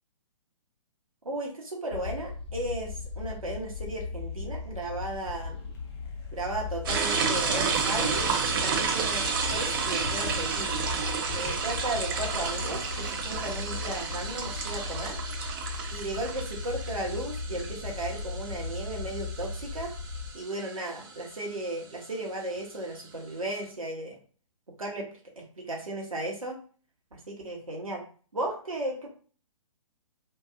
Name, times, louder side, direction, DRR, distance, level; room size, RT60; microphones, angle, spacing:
voice 1, 1.2-5.7 6.3-8.3 8.6-10.8 11.3-15.2 15.9-19.9 20.3-24.2 24.8-25.1 25.4-26.6 27.1-28.0 28.3-29.1, right 1 dB, 85° right, -1 dB, 0.8 m, -35 dB
sound 1, 1.9-20.3, left 4 dB, 50° left, 0.9 m, -37 dB
sound 2, 5.7-12.9, left 5 dB, 35° left, 0.6 m, -45 dB
sound 3, 6.9-21.2, right 5 dB, 40° right, 0.5 m, -31 dB
2.7 x 2.3 x 2.4 m, 0.41 s
figure-of-eight pair, 125°, 17 cm